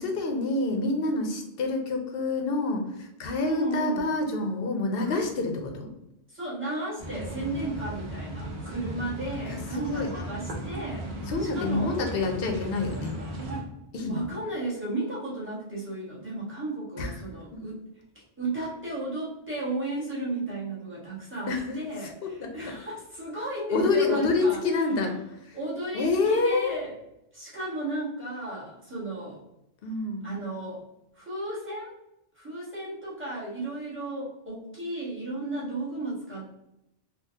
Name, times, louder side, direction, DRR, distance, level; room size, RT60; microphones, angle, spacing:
voice 1, 0.0-5.9 9.4-10.1 11.3-13.2 13.9-14.3 17.0-17.1 17.5-17.6 21.5-22.7 23.7-25.2 25.4-25.6 25.9-26.7 29.8-30.3, left 3 dB, 60° left, 4 dB, 0.8 m, -27 dB
voice 2, 3.5-4.0 5.0-5.2 6.3-12.0 14.1-17.8 18.4-24.6 25.5-26.9 27.3-29.4 30.2-30.8 31.1-31.9 32.3-36.5, right 2 dB, 10° right, -8 dB, 1.3 m, -34 dB
sound 1, 7.0-13.6, right 1 dB, 50° right, 0.8 m, -36 dB
3.9 x 2.4 x 2.7 m, 0.87 s
omnidirectional pair, 1.2 m